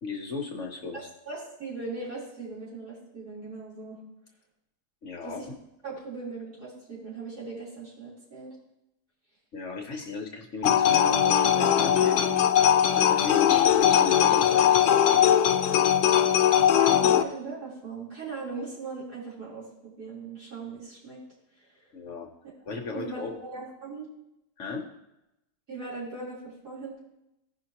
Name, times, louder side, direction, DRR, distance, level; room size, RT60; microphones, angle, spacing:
voice 1, 0.0-1.1 5.0-5.6 9.5-12.3 12.9-14.7 21.9-22.3 22.6-23.3 24.6-24.9, left 4 dB, 55° left, 3 dB, 1.1 m, -36 dB
voice 2, 0.9-4.0 5.2-5.5 5.8-8.6 16.7-21.2 21.6-21.7 22.9-24.1 25.7-27.0, right 3 dB, 70° right, -9 dB, 4.2 m, -39 dB
sound 1, 10.6-17.2, left 9 dB, 85° left, 1.2 m, -20 dB
15.5 x 5.5 x 2.9 m, 0.89 s
omnidirectional pair, 1.8 m